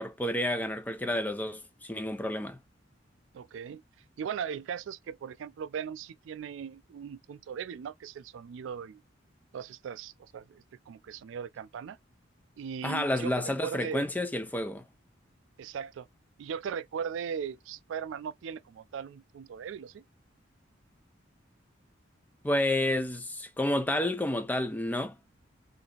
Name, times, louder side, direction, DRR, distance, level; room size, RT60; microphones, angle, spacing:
voice 1, 0.0-2.6 12.8-14.8 22.4-25.2, left 1 dB, 10° left, 0.4 m, -30 dB
voice 2, 3.3-3.8 4.2-9.0 9.5-12.0 12.6-14.1 15.6-16.1 16.4-20.0, right 7 dB, 90° right, 0.3 m, -38 dB
2.7 x 2.6 x 3.7 m
head